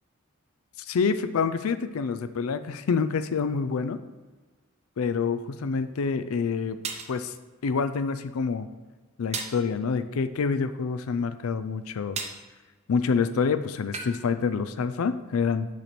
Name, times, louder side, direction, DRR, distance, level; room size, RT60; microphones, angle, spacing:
voice 1, 0.9-4.0 5.0-6.8 7.1-7.3 7.6-8.7 9.2-12.3 12.9-15.7, left 5 dB, 80° left, 12 dB, 0.4 m, -27 dB
sound 1, 5.7-5.8 6.8-7.2 9.3-9.6 12.2-12.5 13.9-14.2, right 5 dB, 30° right, 0.5 m, -34 dB
6.7 x 3.2 x 5.9 m, 1.3 s
head